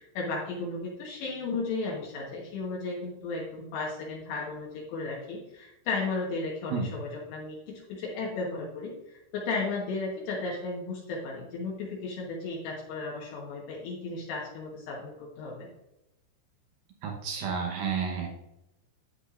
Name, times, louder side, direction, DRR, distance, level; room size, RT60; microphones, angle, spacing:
voice 1, 0.0-15.7, left 3 dB, 75° left, -3 dB, 3.3 m, -34 dB
voice 2, 17.0-18.3, right 6 dB, 75° right, 1 dB, 2.2 m, -31 dB
10.0 x 8.6 x 2.5 m, 0.89 s
omnidirectional pair, 5.3 m